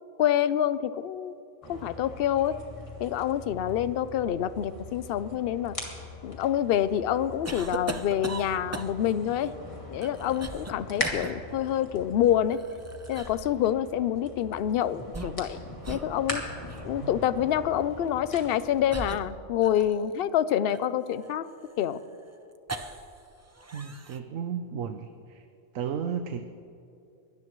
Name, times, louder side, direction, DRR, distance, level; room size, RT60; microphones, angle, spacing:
voice 1, 0.2-1.4 1.7-2.5 3.0-5.8 6.2-9.5 9.9-12.6 13.1-15.6 15.9-16.4 16.8-21.4 21.8-22.0, left 10 dB, 60° left, 14 dB, 0.7 m, -27 dB
sound 1, 1.6-19.2, left 2 dB, 25° left, 2.4 m, -41 dB
sound 2, 7.5-9.2 10.0-10.7 11.0-11.3 12.5-13.5 14.9-15.6 15.8-16.1 16.7-16.9 18.0-18.2 18.9-20.1 20.7-23.2 23.5-24.2, right 2 dB, 20° right, 0.4 m, -39 dB
voice 2, 23.7-25.1 25.7-26.4, right 7 dB, 90° right, 7 dB, 1.2 m, -33 dB
23.5 x 18.5 x 3.1 m, 2.6 s
omnidirectional pair, 1.3 m